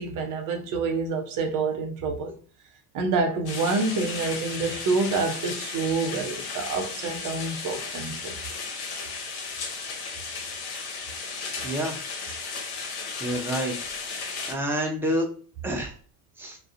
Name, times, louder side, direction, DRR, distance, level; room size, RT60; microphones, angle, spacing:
voice 1, 0.0-2.3 2.9-8.3, right 3 dB, 40° right, 0.7 m, -27 dB
sound 1, 3.5-14.5, left 4 dB, 50° left, 0.8 m, -35 dB
voice 2, 11.3-12.0 13.2-13.7 14.5-15.3 15.6-15.9 16.4-16.6, equal, 5° right, 0.5 m, -28 dB
2.3 x 2.1 x 2.5 m
figure-of-eight pair, 65°, 50 cm